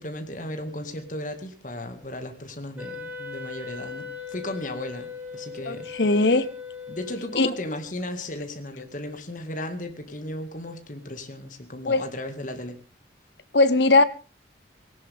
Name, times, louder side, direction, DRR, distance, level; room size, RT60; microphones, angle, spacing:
voice 1, 0.0-6.1 6.9-12.8, left 1 dB, 45° left, 2.1 m, -35 dB
Wind instrument woodwind instrument, 2.8-8.0, left 5 dB, 10° right, 2.5 m, -39 dB
voice 2, 5.7-6.4 7.4-7.5 11.9-12.0 13.5-14.0, left 2 dB, 70° left, 1.0 m, -19 dB
19.0 x 17.5 x 3.6 m
head